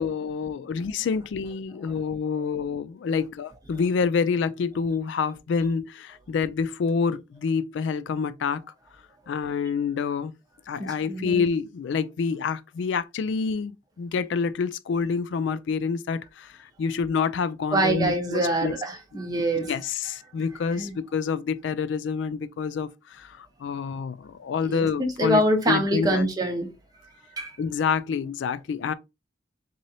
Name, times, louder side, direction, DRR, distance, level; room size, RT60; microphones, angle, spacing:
voice 1, 0.0-8.6 9.3-10.3 10.7-18.7 19.5-26.3 27.6-28.9, left 5 dB, 65° left, 0.3 m, -27 dB
voice 2, 10.8-11.4 17.7-19.7 20.7-20.9 24.7-26.7 27.4-27.5, right 1 dB, 20° right, 0.9 m, -25 dB
3.8 x 3.1 x 2.7 m
head